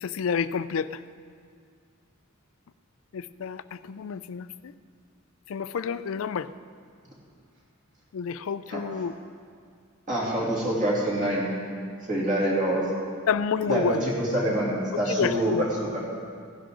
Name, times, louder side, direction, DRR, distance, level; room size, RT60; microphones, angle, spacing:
voice 1, 0.0-0.9 3.1-4.7 5.5-6.5 8.1-9.1 13.3-14.0 15.2-15.7, left 6 dB, 70° left, 14 dB, 0.4 m, -29 dB
voice 2, 10.1-11.5 12.1-12.8 13.7-16.0, right 1 dB, 35° right, -5 dB, 2.9 m, -26 dB
16.5 x 10.5 x 3.8 m, 2.2 s
head